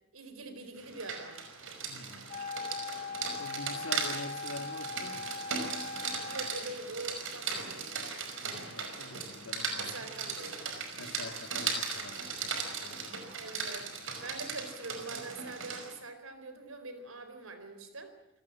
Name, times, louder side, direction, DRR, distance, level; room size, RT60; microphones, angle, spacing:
voice 1, 0.1-1.4 6.3-8.1 9.8-10.7 13.4-13.9 14.2-18.1, right 2 dB, 80° right, 9 dB, 4.5 m, -44 dB
Rain, 0.8-15.9, right 5 dB, 65° right, 5.3 m, -38 dB
voice 2, 1.9-2.3 3.4-5.3 8.4-10.1 11.0-13.2, left 2 dB, 80° left, 7 dB, 2.7 m, -45 dB
Wind instrument woodwind instrument, 2.3-6.7, left 4 dB, 35° left, 1.9 m, -40 dB
28.5 x 18.5 x 7.4 m, 0.89 s
head